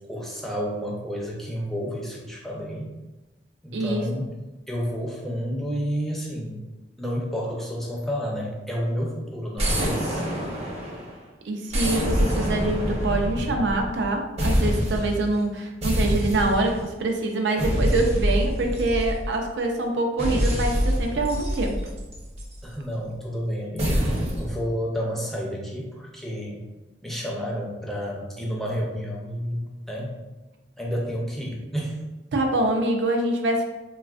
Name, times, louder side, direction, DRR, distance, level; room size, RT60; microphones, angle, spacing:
voice 1, 0.1-2.9 3.6-4.3 4.7-6.6 7.0-10.2 22.6-26.6 27.0-30.2 30.8-32.0, equal, ahead, -3 dB, 0.5 m, -30 dB
voice 2, 3.7-4.1 11.4-21.8 32.3-33.6, right 2 dB, 75° right, 3 dB, 0.4 m, -25 dB
sound 1, 9.6-11.2 11.7-14.1 14.4-15.2 15.8-16.8 17.6-19.5 20.2-22.6 23.8-24.5, equal, 35° right, 0.6 m, -25 dB
3.2 x 2.3 x 2.3 m, 1.1 s
head